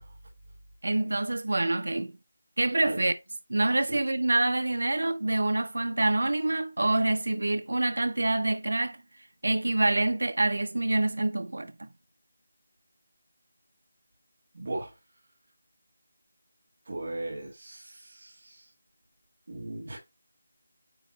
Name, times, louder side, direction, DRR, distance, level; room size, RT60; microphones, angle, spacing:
voice 1, 0.8-2.1 2.6-3.1 3.5-9.0 9.4-11.9, right 2 dB, 80° right, 0.7 m, -26 dB
voice 2, 14.5-14.9 16.9-18.7 19.5-20.0, right 2 dB, 40° right, 1.9 m, -37 dB
8.9 x 3.1 x 4.3 m
figure-of-eight pair, 180°, 0 cm